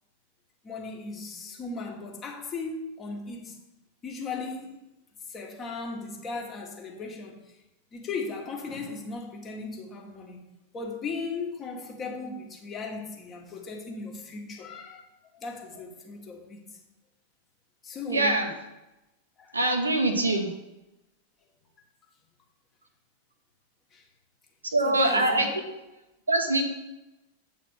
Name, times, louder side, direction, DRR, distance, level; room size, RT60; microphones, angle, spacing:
voice 1, 0.6-3.6 4.0-4.8 5.3-7.6 7.9-10.4 10.7-15.1 15.3-16.8 17.8-18.5 19.4-19.5 20.2-20.3 23.9-24.0 24.8-25.5, left 4 dB, 25° left, 1 dB, 1.6 m, -37 dB
voice 2, 18.1-18.5 19.5-20.5 24.7-25.5 26.3-26.6, right 2 dB, 80° right, 4 dB, 1.0 m, -23 dB
8.0 x 4.2 x 6.3 m, 0.96 s
figure-of-eight pair, 90°, 0 cm